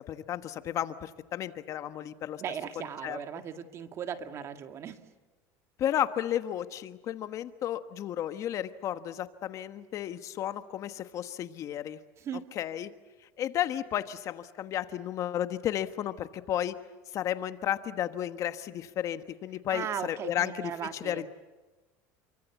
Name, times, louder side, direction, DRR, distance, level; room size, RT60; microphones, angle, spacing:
voice 1, 0.0-2.4 2.8-3.2 5.8-12.0 12.5-12.9 13.4-16.8 17.1-21.3, left 11 dB, 45° left, 11 dB, 1.3 m, -33 dB
voice 2, 2.4-5.0 12.2-12.4 19.7-21.3, right 8 dB, 40° right, 8 dB, 2.1 m, -37 dB
29.5 x 24.0 x 8.3 m, 1.2 s
cardioid pair, 135°, 8 cm